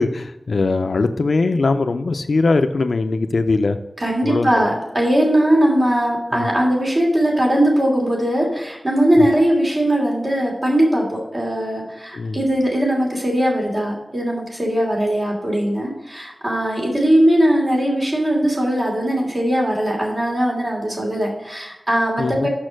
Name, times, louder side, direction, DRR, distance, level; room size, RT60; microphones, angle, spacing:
voice 1, 0.0-3.8 4.2-4.7 6.4-6.5 9.2-9.3 12.1-12.4 22.2-22.5, left 3 dB, 85° left, 8 dB, 0.4 m, -20 dB
voice 2, 4.0-22.5, right 1 dB, 50° right, -2 dB, 2.8 m, -19 dB
6.4 x 5.8 x 6.3 m, 0.98 s
wide cardioid pair, 55°, 0 cm